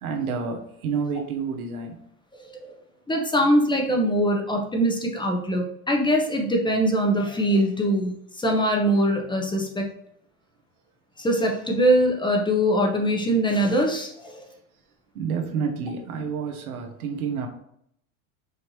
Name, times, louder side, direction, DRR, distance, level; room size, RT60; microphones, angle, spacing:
voice 1, 0.0-2.0 15.1-17.5, right 5 dB, 90° right, 3 dB, 1.0 m, -29 dB
voice 2, 3.1-9.9 11.2-14.5, equal, 10° left, 1 dB, 0.9 m, -22 dB
5.1 x 2.8 x 3.1 m, 0.70 s
hypercardioid pair, 95°, 43 cm